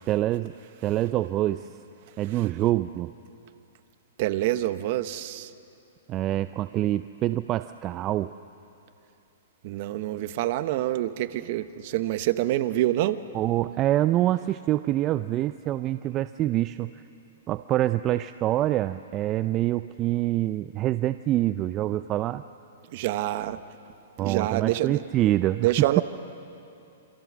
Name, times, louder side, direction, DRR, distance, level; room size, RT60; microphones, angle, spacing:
voice 1, 0.1-0.5 0.8-1.7 2.2-3.1 6.1-8.3 13.3-17.0 17.5-22.4 24.2-26.0, right 14 dB, 30° right, 12 dB, 0.5 m, -26 dB
voice 2, 4.2-5.5 9.6-13.2 22.9-23.6 24.2-25.0 25.6-26.0, right 15 dB, 50° right, 12 dB, 1.1 m, -26 dB
27.5 x 26.0 x 6.2 m, 2.7 s
hypercardioid pair, 135°, 0 cm